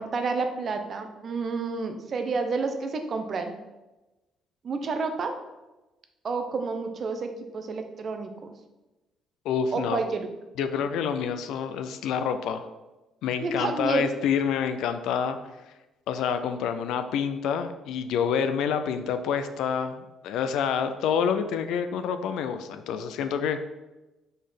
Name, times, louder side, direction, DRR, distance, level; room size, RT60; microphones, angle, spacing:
voice 1, 0.0-3.5 4.6-5.4 6.2-8.5 9.7-10.3 13.4-14.1, right 4 dB, 35° right, 6 dB, 0.7 m, -30 dB
voice 2, 9.4-10.0 10.6-12.6 13.2-15.4 16.1-23.6, left 7 dB, 80° left, 9 dB, 0.5 m, -27 dB
5.2 x 4.3 x 5.8 m, 1.1 s
cardioid pair, 165°, 0 cm